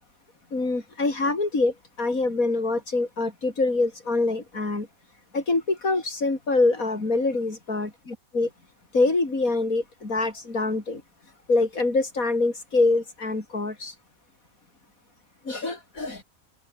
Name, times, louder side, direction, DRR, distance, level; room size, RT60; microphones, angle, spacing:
voice 1, 0.5-4.9 5.3-8.5 8.9-11.0 11.5-13.9 15.4-16.2, left 3 dB, 75° left, 5.0 m, -25 dB
omnidirectional pair, 1.5 m